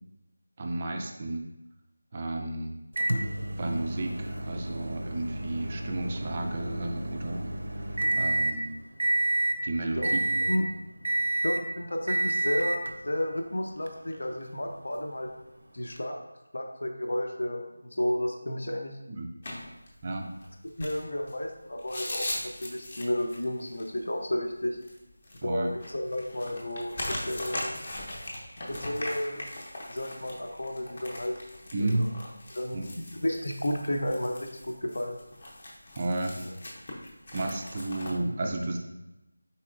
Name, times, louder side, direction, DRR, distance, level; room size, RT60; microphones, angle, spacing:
voice 1, 0.6-1.4 2.1-2.7 3.6-7.5 7.9-8.8 9.6-10.4 19.1-19.3 20.0-20.3 25.4-25.7 31.7-32.1 32.7-32.9 36.0-36.4 37.3-38.8, right 2 dB, 20° right, 2 dB, 0.3 m, -32 dB
Microwave oven, 3.0-8.6 9.0-9.6 10.0-10.6 11.0-11.7 12.1-12.9 13.9-14.0 16.0-16.1, right 1 dB, 80° right, 0.5 m, -29 dB
voice 2, 11.4-15.3 15.7-16.2 16.5-17.7 18.0-19.0 20.8-24.8 25.3-27.7 28.7-29.4 29.9-31.4 31.8-32.1 32.5-35.2 36.4-36.5, left 1 dB, 70° left, 3 dB, 0.6 m, -32 dB
sound 1, 19.4-38.2, left 1 dB, 30° left, 0.7 m, -40 dB
4.2 x 4.1 x 2.5 m, 0.98 s
figure-of-eight pair, 175°, 0 cm